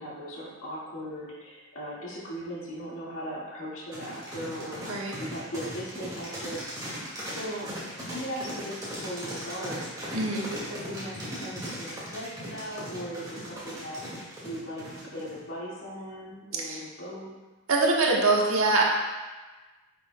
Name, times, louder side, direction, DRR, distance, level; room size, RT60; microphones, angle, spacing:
voice 1, 0.0-7.0 7.3-7.7 8.1-17.3, equal, 65° left, -7 dB, 1.9 m, -38 dB
sound 1, 3.9-15.4, equal, 15° right, 2.0 m, -38 dB
voice 2, 10.1-10.4 16.6-16.8 17.7-18.8, right 3 dB, 70° right, -2 dB, 1.2 m, -23 dB
9.7 x 6.1 x 2.2 m, 1.2 s
head